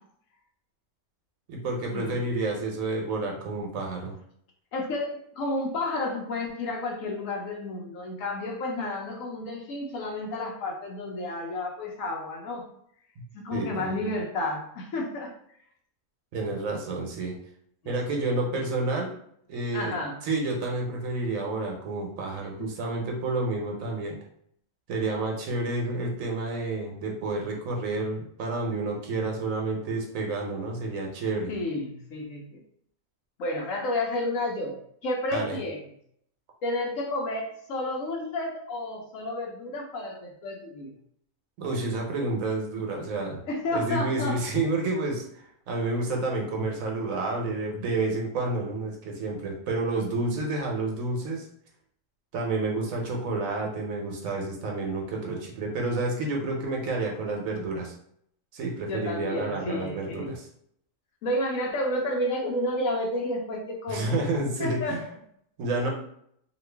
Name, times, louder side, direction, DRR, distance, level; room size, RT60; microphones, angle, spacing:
voice 1, 1.5-4.1 13.5-14.0 16.3-17.3 17.8-19.1 19.5-19.9 20.3-24.2 24.9-31.5 35.3-35.6 41.6-43.4 43.7-45.2 45.7-51.4 52.3-57.9 58.5-60.5 63.9-65.0 65.6-65.9, right 2 dB, 90° right, 0 dB, 1.2 m, -29 dB
voice 2, 4.7-12.7 13.3-15.6 17.8-18.0 18.5-18.6 19.7-20.2 22.6-22.7 31.5-32.6 33.4-34.8 35.0-35.9 36.6-40.9 43.4-44.4 58.9-60.3 61.2-64.2 64.6-65.1, left 1 dB, 80° left, 0 dB, 1.1 m, -31 dB
2.9 x 2.4 x 3.3 m, 0.67 s
omnidirectional pair, 1.4 m